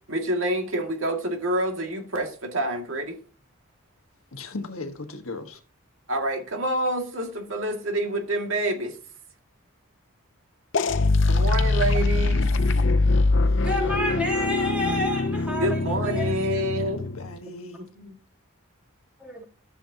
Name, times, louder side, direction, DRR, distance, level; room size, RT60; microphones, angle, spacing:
voice 1, 0.1-3.2 6.1-9.0 11.3-12.5 15.6-17.0 18.0-18.1, right 1 dB, 70° right, 2.1 m, -27 dB
voice 2, 4.3-5.6 16.7-17.8, left 2 dB, 80° left, 1.5 m, -37 dB
sound 1, 10.7-17.4, left 3 dB, 60° left, 0.6 m, -23 dB
voice 3, 13.6-16.3 19.2-19.4, left 1 dB, 5° right, 3.0 m, -29 dB
13.5 x 7.2 x 2.8 m
head